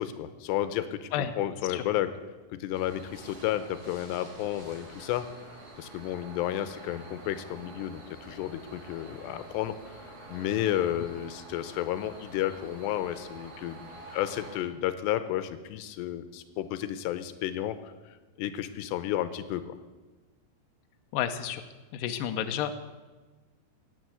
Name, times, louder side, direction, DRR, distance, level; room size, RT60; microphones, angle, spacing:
voice 1, 0.0-1.1 1.4-2.1 2.5-5.3 5.8-10.0 10.3-19.8, left 12 dB, 85° left, 12 dB, 2.9 m, -32 dB
sound 1, 2.7-14.6, right 2 dB, 50° right, 4.2 m, -48 dB
voice 2, 21.1-21.7 21.9-22.7, left 9 dB, 70° left, 7 dB, 2.2 m, -31 dB
17.0 x 9.4 x 8.0 m, 1.2 s
omnidirectional pair, 4.9 m